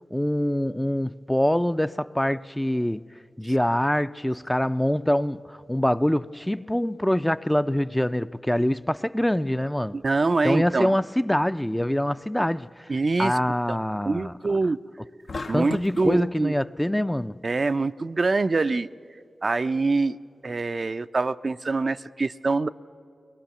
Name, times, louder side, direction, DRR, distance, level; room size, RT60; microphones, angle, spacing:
voice 1, 0.1-3.0 3.4-10.0 10.4-12.9 13.2-14.3 15.5-17.4, left 1 dB, 10° left, 0.4 m, -24 dB
voice 2, 9.9-11.0 12.9-13.4 13.7-13.8 14.0-14.8 15.5-16.5 17.4-18.9 19.4-20.2 20.4-22.7, right 3 dB, 55° right, 0.4 m, -24 dB
sound 1, 15.3-16.1, left 3 dB, 70° left, 0.8 m, -35 dB
21.5 x 20.5 x 6.9 m
cardioid pair, 40°, 0 cm